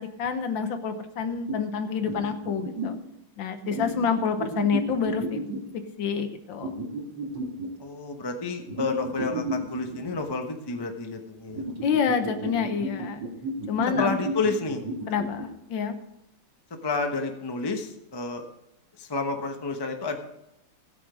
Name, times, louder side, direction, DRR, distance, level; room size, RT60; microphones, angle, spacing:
voice 1, 0.0-3.0 3.4-5.4 6.0-6.7 11.8-13.3 13.7-14.1 15.1-15.9, left 6 dB, 65° left, 8 dB, 1.5 m, -28 dB
sound 1, 1.5-1.6 2.1-3.0 3.6-5.8 6.6-7.7 8.7-10.4 11.5-15.5, right 2 dB, 55° right, 2.5 m, -33 dB
voice 2, 7.8-11.6 14.0-14.8 16.8-18.4 19.0-20.2, left 3 dB, 35° left, 4 dB, 0.4 m, -30 dB
16.5 x 6.2 x 4.9 m, 0.85 s
omnidirectional pair, 2.3 m